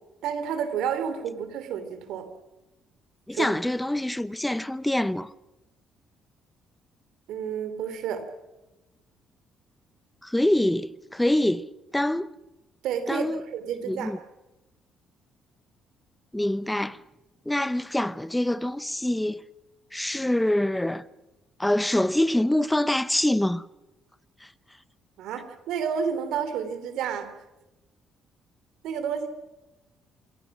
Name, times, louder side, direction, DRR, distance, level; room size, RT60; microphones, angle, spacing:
voice 1, 0.2-2.3 3.3-3.5 7.3-8.2 12.8-14.1 25.2-27.3 28.8-29.3, right 7 dB, 85° right, 3.2 m, -30 dB
voice 2, 3.3-5.3 10.2-11.6 11.9-12.3 13.1-13.4 13.9-14.2 16.3-17.0 17.5-19.4 19.9-21.0 21.6-23.6, left 1 dB, 5° left, 0.7 m, -25 dB
27.5 x 22.5 x 6.2 m
cardioid pair, 145°, 0 cm